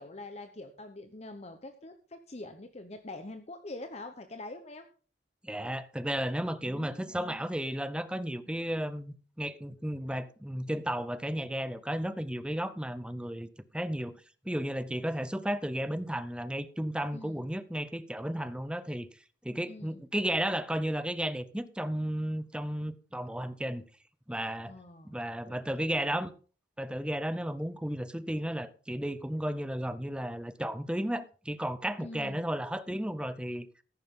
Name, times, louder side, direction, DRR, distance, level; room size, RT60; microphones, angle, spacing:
voice 1, 0.0-4.9 6.6-7.4 17.1-17.4 19.7-20.0 24.7-25.2 25.5-26.2 32.0-32.5, left 2 dB, 35° left, 0.9 m, -45 dB
voice 2, 5.4-13.5 13.7-14.2 14.4-19.1 19.4-23.8 24.3-24.8 25.1-26.3 26.8-33.7, equal, 5° right, 0.6 m, -33 dB
14.0 x 11.0 x 3.7 m
head